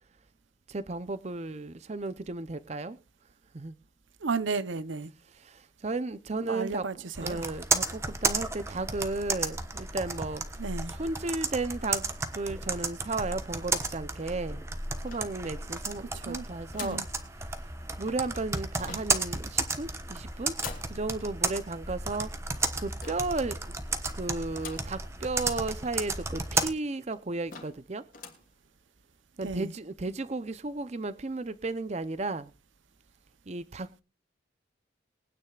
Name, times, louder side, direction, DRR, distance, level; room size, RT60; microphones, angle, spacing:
voice 1, 0.7-3.0 3.5-3.8 5.4-6.8 7.2-10.5 10.9-14.6 15.0-17.0 18.0-20.5 20.9-22.3 22.6-23.7 24.1-28.0 29.4-32.5 33.5-34.0, right 3 dB, 35° right, 0.6 m, -34 dB
voice 2, 4.2-5.1 6.4-7.4 10.6-10.9 16.1-16.5 16.8-17.0 29.4-29.7, right 4 dB, 80° right, 0.8 m, -33 dB
Computer keyboard, 7.1-26.7, right 3 dB, 15° right, 1.1 m, -33 dB
sound 1, 15.1-15.8 16.7-17.1 18.8-19.3 20.6-21.0 23.0-23.4 24.6-25.0 25.5-25.6 25.8-25.9 26.6-26.7 27.1-27.2 27.5-27.8 28.1-28.5, left 6 dB, 45° left, 2.7 m, -44 dB
22.5 x 9.7 x 2.4 m
head